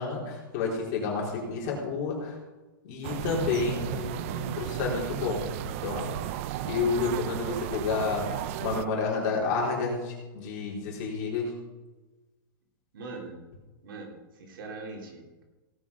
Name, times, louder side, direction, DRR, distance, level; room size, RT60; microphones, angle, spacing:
voice 1, 0.0-2.4 2.8-6.3 6.6-11.5, left 4 dB, 35° left, -3 dB, 4.1 m, -30 dB
sound 1, 3.0-8.9, right 13 dB, 35° right, 0.4 m, -34 dB
voice 2, 12.9-13.4 13.8-15.4, right 3 dB, 70° right, 1 dB, 3.5 m, -41 dB
17.5 x 7.4 x 5.3 m, 1.2 s
supercardioid pair, 165°, 12 cm